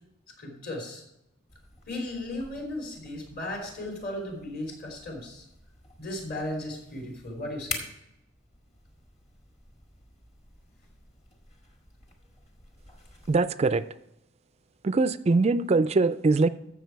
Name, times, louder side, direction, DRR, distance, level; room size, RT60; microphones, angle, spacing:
voice 1, 0.4-1.0 1.9-5.4 6.0-7.8, left 1 dB, 45° left, 1 dB, 3.4 m, -36 dB
sound 1, 1.5-13.4, left 4 dB, 30° left, 1.7 m, -46 dB
voice 2, 13.3-13.9 14.8-16.5, right 3 dB, 30° right, 15 dB, 0.3 m, -22 dB
14.0 x 6.8 x 4.6 m, 0.84 s
head